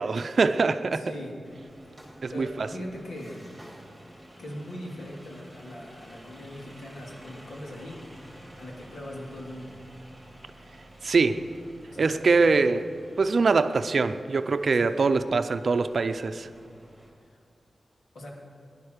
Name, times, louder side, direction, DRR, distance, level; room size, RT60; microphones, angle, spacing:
voice 1, 0.0-1.1 2.2-2.7 11.0-11.4 12.0-12.9 13.2-16.5, right 4 dB, 50° right, 10 dB, 0.6 m, -23 dB
voice 2, 0.9-1.4 2.3-3.5 4.4-8.0 8.6-9.8 11.9-12.2 14.6-15.1 18.1-18.3, left 1 dB, 75° left, -2 dB, 3.0 m, -40 dB
sound 1, 1.4-17.1, right 1 dB, ahead, 3.3 m, -50 dB
19.5 x 11.0 x 6.6 m, 2.4 s
wide cardioid pair, 175°, 0 cm